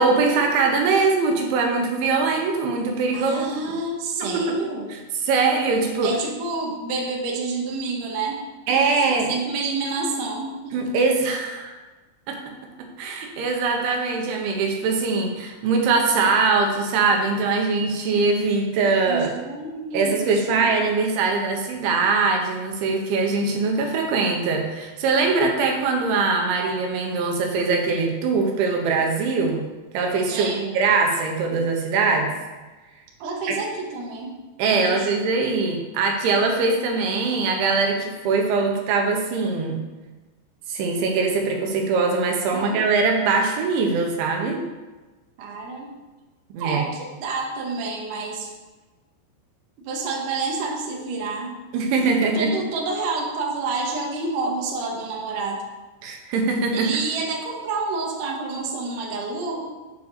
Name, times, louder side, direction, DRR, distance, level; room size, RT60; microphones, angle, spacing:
voice 1, 0.0-3.5 4.2-4.4 4.9-6.1 8.7-9.3 10.7-11.7 12.3-12.4 13.0-19.3 19.9-29.7 29.9-32.3 33.5-33.6 34.6-39.8 40.7-44.6 46.5-46.8 51.7-52.5 56.0-56.9, right 4 dB, 80° right, 2 dB, 3.4 m, -22 dB
voice 2, 3.1-4.9 6.0-8.4 8.7-10.7 19.1-21.0 30.3-30.9 33.2-34.3 34.8-35.1 42.5-42.8 45.4-46.0 46.6-48.5 49.8-51.5 52.2-55.6 56.7-59.8, right 3 dB, 65° right, -1 dB, 2.3 m, -29 dB
8.2 x 4.8 x 6.7 m, 1.2 s
omnidirectional pair, 5.4 m